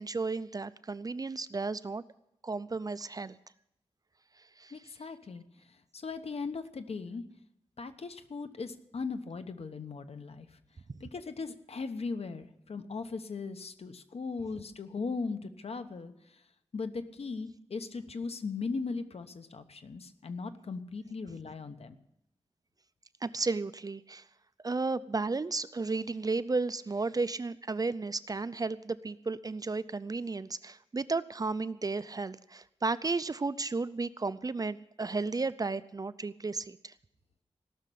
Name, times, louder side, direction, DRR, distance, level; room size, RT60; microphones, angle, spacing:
voice 1, 0.0-2.0 2.4-3.4 4.6-4.7 23.2-24.2 24.6-36.9, right 3 dB, 35° right, 15 dB, 0.5 m, -33 dB
voice 2, 4.7-7.2 7.8-10.6 11.0-16.4 16.7-22.0, left 4 dB, 65° left, 9 dB, 1.1 m, -38 dB
17.5 x 6.7 x 10.0 m, 0.81 s
wide cardioid pair, 105°, 11 cm